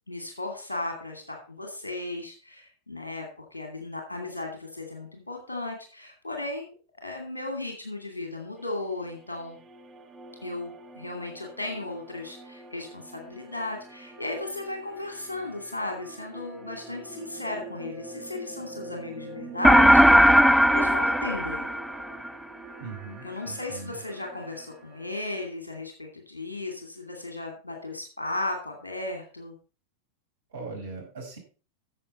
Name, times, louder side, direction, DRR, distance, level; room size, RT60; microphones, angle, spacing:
voice 1, 0.1-6.7 7.0-9.6 10.4-21.7 23.2-29.5, left 2 dB, 75° left, 3 dB, 2.4 m, -35 dB
sound 1, 8.6-25.5, right 2 dB, 20° right, 2.0 m, -45 dB
sound 2, 19.6-22.3, equal, ahead, 0.4 m, -18 dB
voice 2, 22.8-23.9 30.5-31.4, right 4 dB, 65° right, 0 dB, 5.0 m, -39 dB
14.0 x 7.1 x 4.3 m, 0.37 s
figure-of-eight pair, 90°, 0 cm